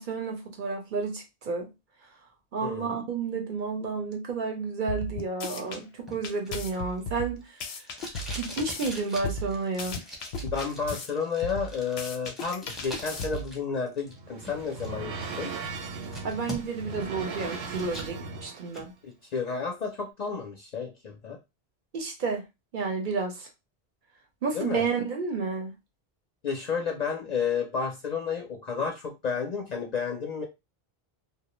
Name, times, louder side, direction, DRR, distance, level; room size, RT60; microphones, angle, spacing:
voice 1, 0.0-1.7 2.5-7.6 8.4-10.0 16.2-18.9 21.9-22.5 22.7-23.5 24.4-25.7, right 4 dB, 60° right, 0.7 m, -31 dB
voice 2, 2.6-3.0 10.4-15.5 19.0-21.4 24.5-24.8 26.4-30.5, left 5 dB, 55° left, 0.5 m, -31 dB
sound 1, 4.9-5.8 6.2-8.9 9.2-11.1 11.4-13.6, left 1 dB, 85° left, 0.8 m, -36 dB
Packing tape duct tape, 6.1-13.6 13.9-14.9 15.3-15.4 15.8-16.9 17.3-18.1 18.5-18.9, equal, ahead, 0.5 m, -42 dB
sound 2, 13.8-18.8, right 4 dB, 90° right, 0.8 m, -38 dB
2.3 x 2.1 x 2.9 m
omnidirectional pair, 1.0 m